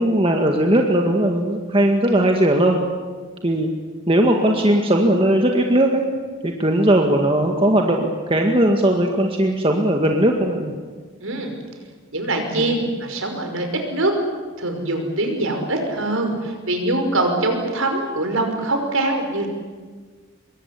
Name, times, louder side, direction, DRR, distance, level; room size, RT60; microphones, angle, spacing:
voice 1, 0.0-2.8 3.4-3.7 4.1-6.0 6.4-10.7 12.5-12.6, right 1 dB, 25° right, 2 dB, 1.9 m, -18 dB
voice 2, 11.2-11.5 12.1-14.2 14.6-19.5, right 2 dB, 70° right, 4 dB, 5.5 m, -23 dB
25.0 x 22.5 x 9.8 m, 1.5 s
head